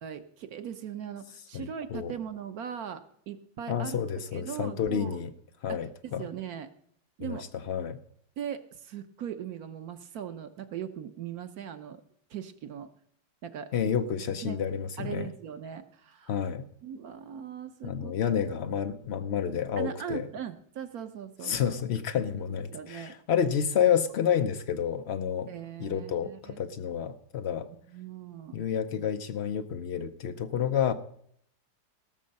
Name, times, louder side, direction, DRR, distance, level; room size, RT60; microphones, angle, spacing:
voice 1, 0.0-4.0 4.3-5.2 5.7-6.7 7.2-7.5 8.4-12.0 12.3-12.9 13.4-13.7 14.4-14.6 15.0-16.3 16.8-18.1 19.8-21.8 22.3-23.2 25.5-26.6 27.9-28.6, right 8 dB, 60° right, 9 dB, 1.1 m, -39 dB
voice 2, 1.5-2.2 3.7-5.3 5.6-6.3 7.2-8.0 13.7-15.3 16.3-16.7 17.8-20.3 21.4-25.5 25.8-27.7 28.5-30.9, left 8 dB, 90° left, 7 dB, 0.5 m, -29 dB
18.5 x 6.6 x 5.3 m, 0.67 s
omnidirectional pair, 2.0 m